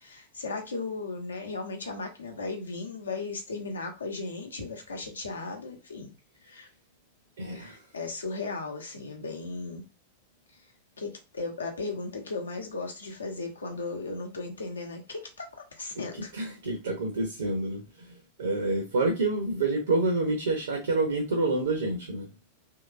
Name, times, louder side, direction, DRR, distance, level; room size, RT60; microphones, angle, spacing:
voice 1, 0.0-6.1 6.4-6.7 7.5-9.8 11.0-16.3, left 3 dB, 75° left, 0.8 m, -36 dB
voice 2, 7.4-7.8 16.3-17.8 18.4-22.3, right 2 dB, 65° right, 0.7 m, -27 dB
3.0 x 2.8 x 2.4 m
figure-of-eight pair, 90°, 0 cm